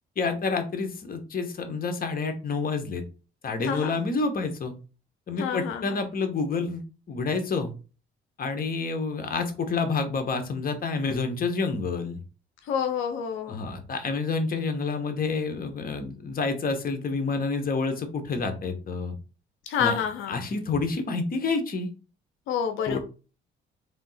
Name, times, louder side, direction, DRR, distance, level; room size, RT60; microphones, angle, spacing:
voice 1, 0.2-3.0 3.4-4.7 5.3-6.8 7.1-7.7 8.4-12.2 13.5-19.2 19.8-19.9 20.3-21.9 22.9-23.0, left 4 dB, 45° left, 1.0 m, -28 dB
voice 2, 3.6-4.0 5.4-5.9 12.7-13.6 19.7-20.4 22.5-23.0, left 8 dB, 90° left, 0.5 m, -28 dB
3.6 x 2.8 x 4.1 m
cardioid pair, 90°, 20 cm